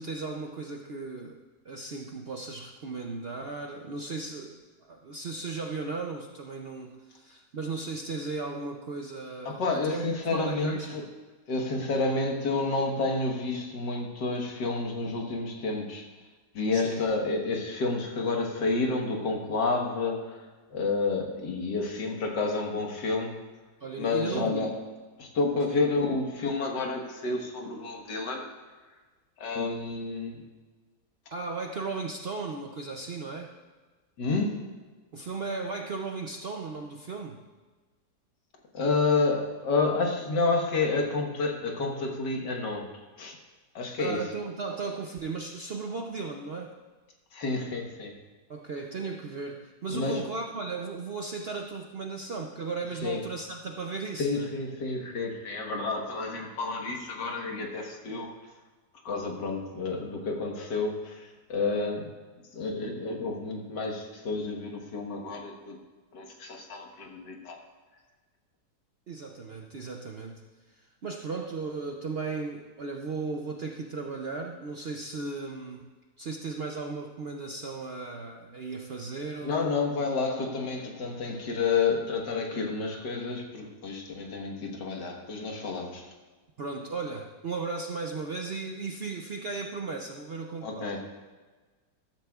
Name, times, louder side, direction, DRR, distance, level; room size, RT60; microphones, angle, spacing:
voice 1, 0.0-1.4 1.6-4.6 4.9-11.0 16.7-17.0 23.8-24.8 25.7-25.8 31.3-33.5 35.1-37.4 44.0-46.8 48.5-54.5 69.1-70.4 70.7-75.9 76.2-79.7 86.6-90.9, right 4 dB, 60° right, 2 dB, 0.6 m, -36 dB
voice 2, 9.5-11.0 11.5-16.1 16.5-20.4 20.7-23.4 24.0-24.7 25.2-28.4 29.4-30.4 34.2-34.6 38.7-42.9 43.2-43.4 43.8-44.2 47.3-48.1 49.9-50.2 53.0-53.2 54.2-58.3 59.0-62.1 62.5-65.8 66.1-67.6 79.4-86.1 90.6-91.0, left 3 dB, 85° left, 1 dB, 2.1 m, -30 dB
13.5 x 13.0 x 2.4 m, 1.3 s
omnidirectional pair, 1.8 m